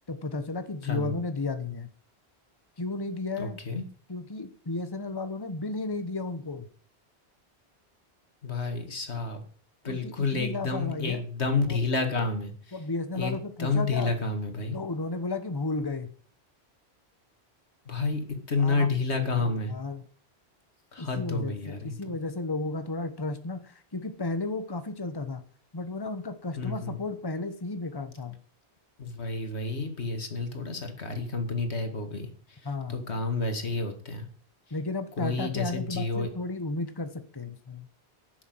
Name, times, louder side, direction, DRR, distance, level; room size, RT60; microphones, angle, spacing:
voice 1, 0.1-1.9 2.8-3.6 4.1-6.7 9.8-11.2 11.7-11.8 12.7-14.1 14.7-16.1 18.6-18.9 19.1-20.0 21.0-25.4 25.7-28.4 32.6-33.0 34.7-37.9, left 3 dB, 20° left, 10 dB, 1.1 m, -33 dB
voice 2, 0.8-1.1 3.4-3.8 8.4-9.4 9.8-12.7 13.2-14.8 17.9-18.2 18.5-19.7 20.9-22.0 26.6-27.0 29.0-32.6 32.9-34.3 35.2-36.3, left 3 dB, 90° left, 6 dB, 2.4 m, -30 dB
11.0 x 7.3 x 7.9 m, 0.44 s
omnidirectional pair, 1.1 m